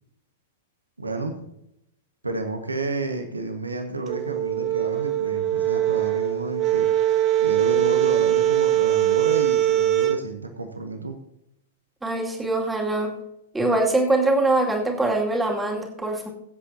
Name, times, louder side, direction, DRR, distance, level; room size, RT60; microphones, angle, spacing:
voice 1, 1.0-1.5 2.2-6.9 7.4-11.2, right 3 dB, 85° right, 5 dB, 1.5 m, -31 dB
sound 1, 4.1-10.2, right 12 dB, 35° right, 1.0 m, -22 dB
voice 2, 12.0-13.2 13.5-16.3, right 2 dB, 10° right, 0 dB, 2.5 m, -23 dB
22.5 x 8.1 x 2.8 m, 0.82 s
figure-of-eight pair, 105°, 0 cm